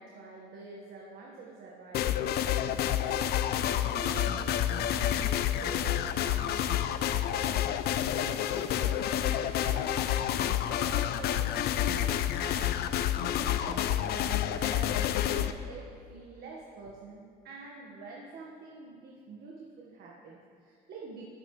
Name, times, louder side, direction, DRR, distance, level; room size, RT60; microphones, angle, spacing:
voice 1, 0.0-3.4 3.9-7.6 8.1-21.2, right 3 dB, 65° right, -2 dB, 1.6 m, -46 dB
sound 1, 1.9-15.5, left 11 dB, 70° left, 0.6 m, -29 dB
24.0 x 8.6 x 3.3 m, 2.2 s
cardioid pair, 110°, 17 cm